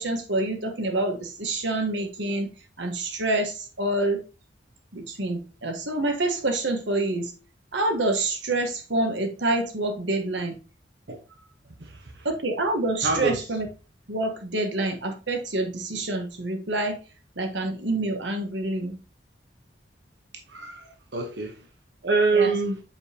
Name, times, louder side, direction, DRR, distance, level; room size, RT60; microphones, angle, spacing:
voice 1, 0.0-2.5 2.8-4.2 4.9-7.3 7.7-10.6 12.2-13.7 14.1-17.0 17.4-19.0 20.5-20.9 22.3-22.5, right 2 dB, 85° right, 4 dB, 1.3 m, -27 dB
voice 2, 11.8-12.3 13.0-13.4 21.1-21.7 22.0-22.8, right 3 dB, 70° right, 2 dB, 1.1 m, -24 dB
7.2 x 5.1 x 2.8 m, 0.32 s
head